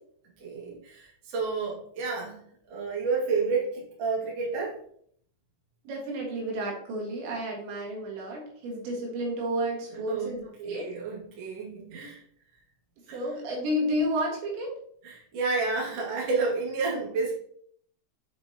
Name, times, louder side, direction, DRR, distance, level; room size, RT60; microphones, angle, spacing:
voice 1, 0.4-2.4 2.7-4.8 9.9-12.2 13.1-13.2 15.0-17.3, right 4 dB, 45° right, -5 dB, 2.3 m, -30 dB
voice 2, 5.9-10.9 13.1-14.7, equal, 70° right, -2 dB, 3.9 m, -31 dB
7.8 x 6.2 x 2.9 m, 0.63 s
omnidirectional pair, 5.5 m